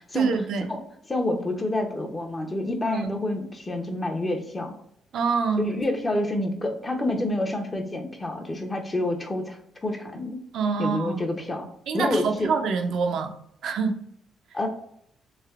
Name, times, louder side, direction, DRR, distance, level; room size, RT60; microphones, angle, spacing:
voice 1, 0.1-0.7 2.9-3.1 5.1-5.7 10.5-11.3 11.9-13.3 13.6-14.0, right 5 dB, 75° right, 0.4 m, -26 dB
voice 2, 1.1-4.8 5.6-10.4 10.8-11.7 11.9-12.5 14.5-14.7, left 1 dB, 25° left, 0.6 m, -28 dB
3.3 x 2.5 x 2.3 m
cardioid pair, 90°, 0 cm